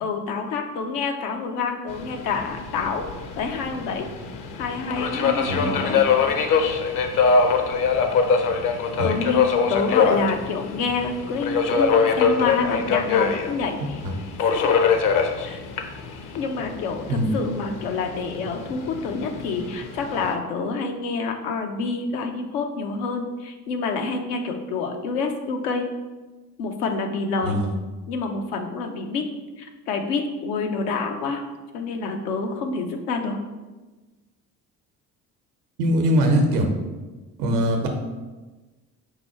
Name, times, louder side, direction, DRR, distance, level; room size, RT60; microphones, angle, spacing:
voice 1, 0.0-3.1 3.4-4.1 4.6-6.0 9.0-14.0 14.4-14.9 15.4-15.6 16.3-25.8 26.6-27.6 28.1-29.3 29.6-31.4 31.7-33.4, left 4 dB, 80° left, 4 dB, 0.7 m, -27 dB
Subway metro underground, 1.9-20.3, left 5 dB, 45° left, 0.6 m, -24 dB
voice 2, 5.5-5.8 9.0-9.1 14.0-14.1 17.1-17.3 27.4-27.7 35.8-36.7 37.4-37.9, equal, 85° right, 3 dB, 0.9 m, -21 dB
4.9 x 2.3 x 4.2 m, 1.2 s
hypercardioid pair, 60°, 46 cm